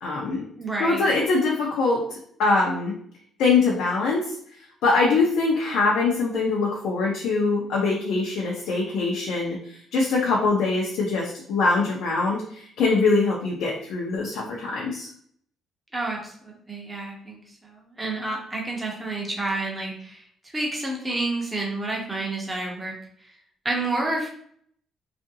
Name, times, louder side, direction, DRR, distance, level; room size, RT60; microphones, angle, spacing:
voice 1, 0.0-0.4 0.8-2.9 3.4-4.4 4.8-15.1, left 3 dB, 75° left, -3 dB, 0.6 m, -23 dB
voice 2, 0.6-1.0 15.9-20.2 20.5-23.0 23.6-24.3, right 2 dB, 10° right, -2 dB, 0.6 m, -29 dB
2.7 x 2.5 x 2.7 m, 0.63 s
cardioid pair, 180°, 0 cm